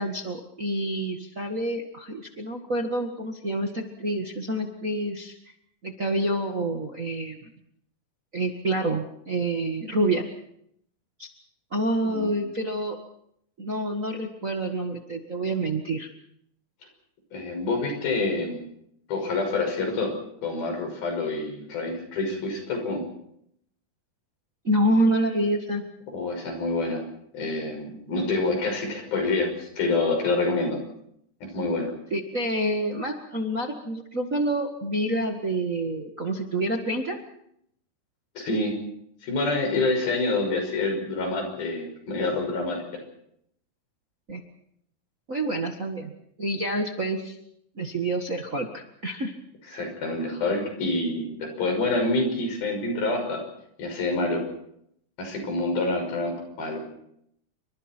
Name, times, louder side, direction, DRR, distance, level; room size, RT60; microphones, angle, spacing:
voice 1, 0.0-5.3 5.8-7.5 8.3-10.2 11.2-11.3 11.7-13.0 13.6-16.1 24.6-25.8 32.1-37.2 44.3-44.4 45.3-46.1 46.4-47.4 47.7-49.3, right 1 dB, 35° right, 2 dB, 1.3 m, -27 dB
voice 2, 17.3-18.6 19.1-20.1 20.4-23.0 26.1-27.0 27.3-30.8 31.4-31.9 38.4-38.8 39.2-43.0 49.7-53.4 53.8-54.4 55.2-56.8, left 2 dB, 90° left, 4 dB, 7.8 m, -27 dB
28.5 x 25.0 x 4.5 m, 0.73 s
omnidirectional pair, 4.2 m